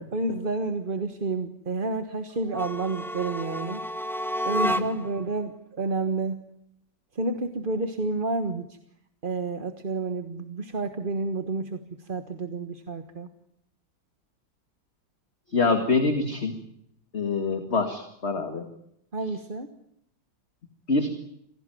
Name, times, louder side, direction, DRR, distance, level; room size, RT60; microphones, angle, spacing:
voice 1, 0.1-3.8 4.4-6.4 7.1-8.7 9.2-13.3 19.1-19.7, right 3 dB, 30° right, 8 dB, 1.3 m, -30 dB
sound 1, 2.5-5.2, equal, ahead, 0.9 m, -30 dB
voice 2, 15.5-16.5 17.1-18.7 20.9-21.1, left 3 dB, 35° left, 6 dB, 2.2 m, -25 dB
27.5 x 17.5 x 9.3 m, 0.76 s
omnidirectional pair, 2.1 m